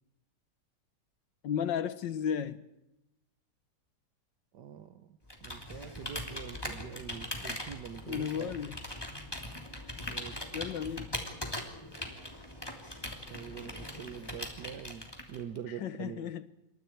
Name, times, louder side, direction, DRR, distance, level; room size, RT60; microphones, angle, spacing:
voice 1, 1.4-2.6 8.1-8.8 10.5-11.3 15.8-16.4, left 8 dB, 90° left, 1.8 m, -34 dB
voice 2, 4.5-8.5 10.1-10.5 13.3-16.3, right 9 dB, 70° right, 1.5 m, -44 dB
Computer keyboard, 5.3-15.6, left 1 dB, 15° left, 3.1 m, -41 dB
28.0 x 25.0 x 4.6 m
omnidirectional pair, 1.9 m